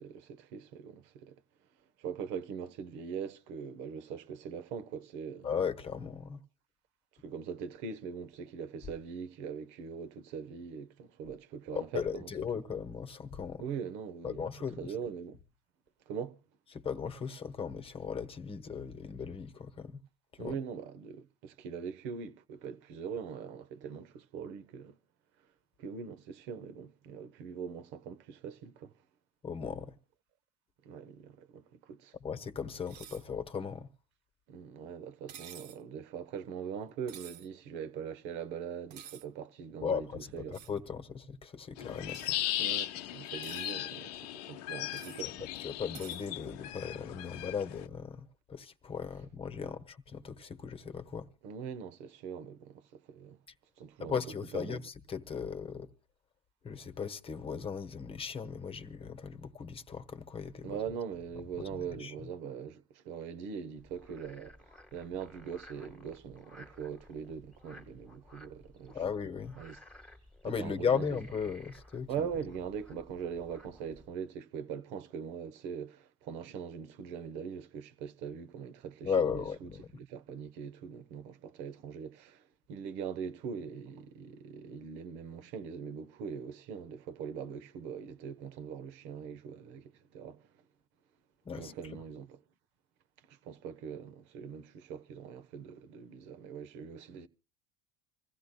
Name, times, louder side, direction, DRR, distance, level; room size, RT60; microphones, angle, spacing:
voice 1, 0.0-1.4 2.0-5.5 7.2-12.3 13.6-14.5 14.8-15.4 16.1-16.4 20.4-25.0 25.8-28.9 30.8-32.1 34.5-40.6 42.6-45.5 49.6-49.7 51.4-53.4 53.8-54.2 54.5-54.8 60.6-69.0 69.6-69.8 70.4-71.2 72.1-90.5 91.5-92.4 93.2-97.3, right 7 dB, 65° right, 0.9 m, -42 dB
voice 2, 5.4-6.4 11.7-13.6 14.2-14.9 16.7-20.0 20.3-20.5 29.4-30.0 32.2-33.9 39.8-40.1 40.5-42.3 45.6-51.3 54.0-55.9 56.6-60.8 62.0-62.1 68.9-69.6 70.4-72.3 79.0-79.9 91.4-91.7, left 6 dB, 30° left, 1.1 m, -37 dB
sound 1, 32.9-33.3 35.3-35.8 37.1-37.5 38.9-39.3 40.5-40.8 42.1-42.3 43.2-43.7 44.9-45.2 45.9-46.2, right 10 dB, 90° right, 0.9 m, -50 dB
sound 2, 41.8-47.9, left 14 dB, 80° left, 0.7 m, -37 dB
Frog, 63.8-74.1, left 1 dB, 5° left, 1.6 m, -56 dB
27.0 x 15.5 x 2.2 m
supercardioid pair, 95°, 20 cm